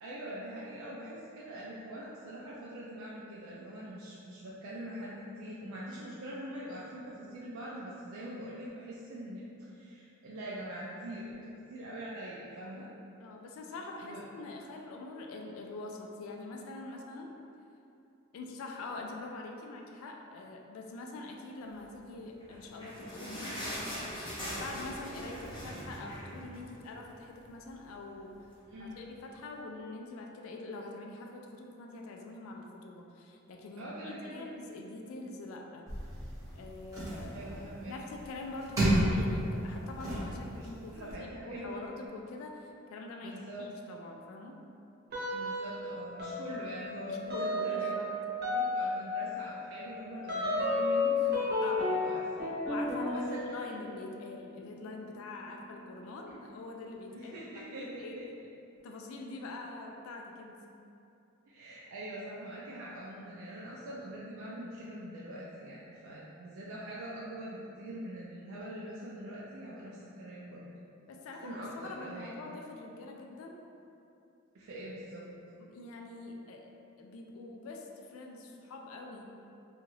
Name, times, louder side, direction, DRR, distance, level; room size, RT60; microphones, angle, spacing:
voice 1, 0.0-12.9 14.0-14.2 28.7-29.0 33.8-34.5 37.3-38.0 40.5-40.7 40.9-41.8 43.2-43.6 45.3-48.0 48.5-51.5 51.8-52.5 53.1-53.8 57.1-58.2 61.5-70.6 71.4-72.3 74.5-75.3, right 1 dB, 70° right, -6 dB, 0.4 m, -43 dB
voice 2, 13.2-17.3 18.3-23.6 24.4-28.3 28.8-35.9 36.5-37.5 37.9-44.6 47.0-48.1 51.2-51.3 51.6-52.1 52.7-58.2 58.8-60.6 71.1-73.6 75.6-76.7 77.0-79.2, left 2 dB, 70° left, 2 dB, 0.3 m, -44 dB
sound 1, 22.3-27.1 27.5-27.6 27.8-28.0 28.7-28.8, equal, 25° left, 0.6 m, -41 dB
sound 2, 35.9-41.1, right 1 dB, 15° right, 0.8 m, -33 dB
sound 3, 45.1-45.9 46.2-56.5, left 2 dB, 50° right, 0.8 m, -34 dB
2.8 x 2.3 x 3.0 m, 2.7 s
head